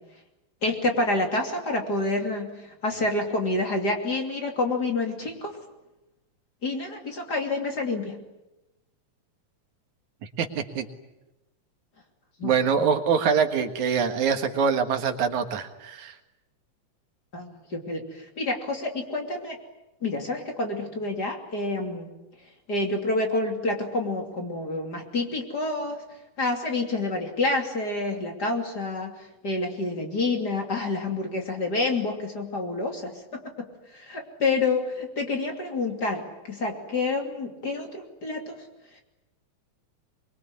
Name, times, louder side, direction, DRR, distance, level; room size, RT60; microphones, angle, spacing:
voice 1, 0.6-5.6 6.6-8.2 12.4-12.5 12.8-12.9 17.3-19.6 20.0-22.1 22.7-26.0 26.4-29.2 29.4-38.6, left 2 dB, 35° left, 3 dB, 3.2 m, -28 dB
voice 2, 10.2-10.9 12.4-16.2, right 6 dB, 75° right, 7 dB, 3.1 m, -24 dB
24.0 x 23.5 x 9.8 m, 0.98 s
omnidirectional pair, 3.4 m